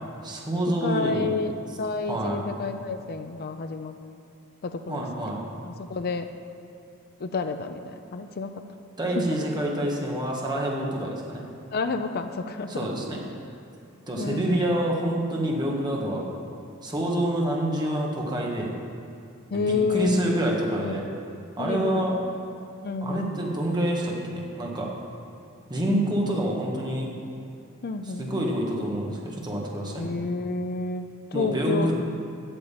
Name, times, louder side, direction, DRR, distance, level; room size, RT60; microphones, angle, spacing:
voice 1, 0.2-1.3 2.1-2.4 4.9-5.4 9.0-11.4 12.7-13.2 14.1-16.3 16.8-18.7 19.5-21.0 21.6-22.2 23.0-24.9 25.7-27.1 28.2-30.1 31.3-31.9, right 1 dB, 20° right, -2 dB, 1.7 m, -27 dB
voice 2, 0.8-4.0 4.6-5.0 5.6-6.3 7.2-7.8 8.1-8.7 9.2-9.3 11.7-12.9 14.2-14.8 19.5-20.2 20.7-21.0 21.6-22.1 22.8-23.3 27.8-28.3 30.0-31.9, left 4 dB, 50° left, 8 dB, 0.5 m, -29 dB
8.9 x 6.7 x 8.6 m, 2.7 s
head